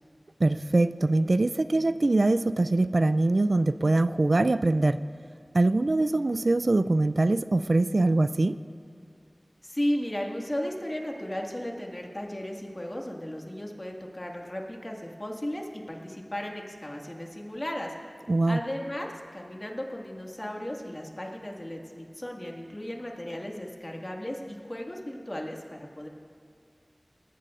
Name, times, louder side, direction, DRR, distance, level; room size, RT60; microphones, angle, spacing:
voice 1, 0.4-5.0 5.5-8.6 18.3-18.6, right 2 dB, 70° right, 13 dB, 0.3 m, -23 dB
voice 2, 9.6-17.9 18.5-26.1, left 1 dB, 35° left, 0 dB, 1.9 m, -35 dB
19.5 x 15.0 x 2.5 m, 2.5 s
wide cardioid pair, 40°, 0 cm